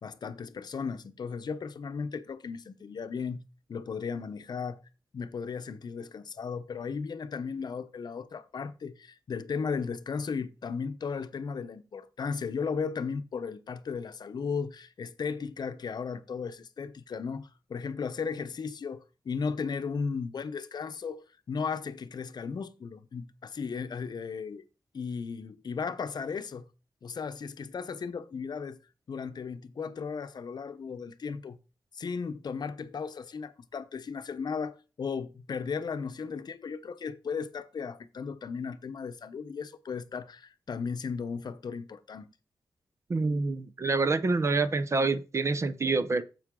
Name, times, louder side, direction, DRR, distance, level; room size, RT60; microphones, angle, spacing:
voice 1, 0.0-3.4 3.7-4.8 5.1-24.6 24.9-26.7 27.0-28.8 29.1-31.6 31.9-42.3, left 5 dB, 65° left, 0.8 m, -35 dB
voice 2, 43.1-46.2, right 3 dB, 40° right, 0.7 m, -27 dB
9.5 x 7.6 x 3.8 m
wide cardioid pair, 135°, 8 cm